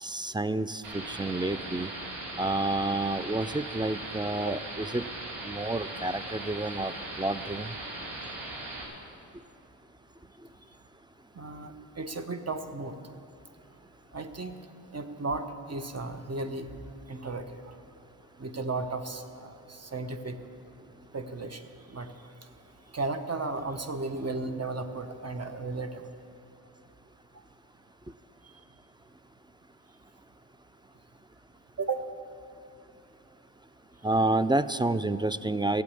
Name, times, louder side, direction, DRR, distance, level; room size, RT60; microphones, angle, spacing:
voice 1, 0.0-1.9 2.4-5.1 5.4-7.7 34.0-35.8, right 2 dB, 10° right, 15 dB, 0.4 m, -29 dB
sound 1, 0.8-8.8, right 2 dB, 85° right, 2.6 m, -39 dB
voice 2, 11.3-12.9 14.1-14.5 14.9-16.7 17.1-17.8 18.4-20.4 21.1-21.6 21.9-22.1 22.9-26.1 31.8-32.0, right 3 dB, 30° right, 8 dB, 1.2 m, -34 dB
15.5 x 7.9 x 8.5 m, 2.6 s
supercardioid pair, 45°, 48 cm